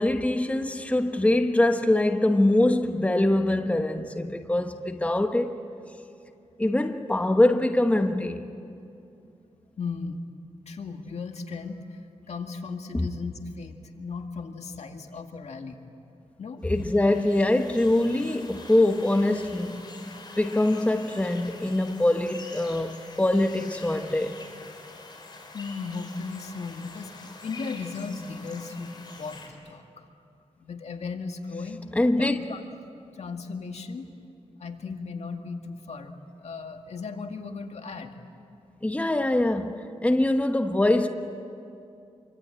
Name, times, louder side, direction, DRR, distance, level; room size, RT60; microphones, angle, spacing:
voice 1, 0.0-5.6 6.6-8.5 12.9-13.1 16.6-19.9 20.4-24.4 31.9-32.4 38.8-41.1, left 1 dB, 10° left, 1.2 m, -23 dB
voice 2, 9.8-10.2 10.7-15.8 16.4-16.6 25.5-30.1 30.6-31.8 32.1-32.6 33.1-34.1 34.6-38.2, left 4 dB, 70° left, 2.1 m, -36 dB
sound 1, 16.7-29.5, left 3 dB, 40° left, 4.8 m, -45 dB
27.0 x 24.5 x 9.0 m
wide cardioid pair, 105°, 12 cm